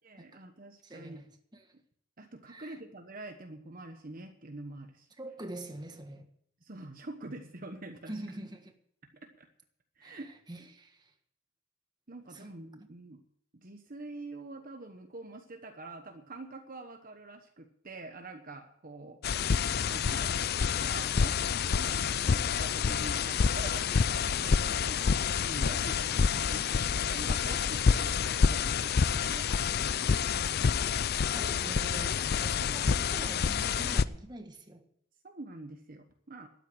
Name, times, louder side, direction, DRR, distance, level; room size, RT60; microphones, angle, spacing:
voice 1, 0.0-1.2 2.2-5.1 6.6-8.1 9.2-9.5 10.0-10.3 12.1-13.2 13.5-19.2 19.8-20.4 20.8-29.8 35.2-36.5, right 2 dB, 40° right, 1.1 m, -45 dB
voice 2, 0.8-1.7 2.5-2.8 5.2-6.3 8.1-8.7 10.0-11.1 12.3-12.5 12.8-12.9 31.3-34.8, right 1 dB, 20° right, 1.5 m, -45 dB
sound 1, 19.2-34.0, left 6 dB, 50° left, 0.4 m, -28 dB
12.5 x 9.2 x 7.9 m
head